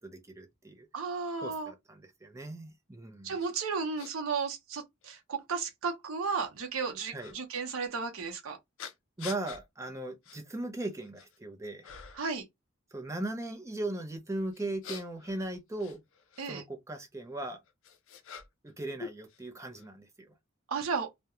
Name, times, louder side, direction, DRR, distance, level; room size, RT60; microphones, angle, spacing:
voice 1, 0.0-0.9 1.4-3.4 7.1-7.4 9.2-11.9 12.9-16.0 16.5-17.6 18.6-20.3, right 2 dB, 15° right, 0.5 m, -38 dB
voice 2, 0.9-1.7 3.2-8.6 12.2-12.4 16.4-16.6 20.7-21.1, right 5 dB, 75° right, 0.6 m, -34 dB
sound 1, 3.4-3.5 4.0-4.1 5.0-5.1 7.2-7.4 8.8-9.6 10.2-10.4 10.9-11.4 11.8-12.3 14.5-16.5 17.4-18.7 19.0-19.9, left 6 dB, 65° left, 0.4 m, -46 dB
2.3 x 2.1 x 2.9 m
head